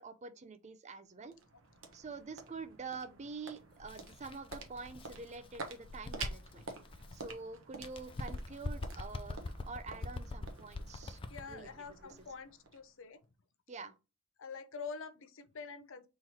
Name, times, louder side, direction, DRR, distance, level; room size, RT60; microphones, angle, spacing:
voice 1, 0.0-1.4 1.9-6.6 7.1-11.2 11.5-11.7 12.0-12.1 13.7-13.9, right 4 dB, 35° right, 0.5 m, -46 dB
sound 1, 0.8-13.2, right 4 dB, 65° right, 1.0 m, -50 dB
Bird, 3.8-7.4 7.8-11.6, left 2 dB, 25° left, 0.4 m, -44 dB
voice 2, 11.3-13.2 14.4-16.1, left 5 dB, 65° left, 0.6 m, -46 dB
3.7 x 3.0 x 4.3 m
head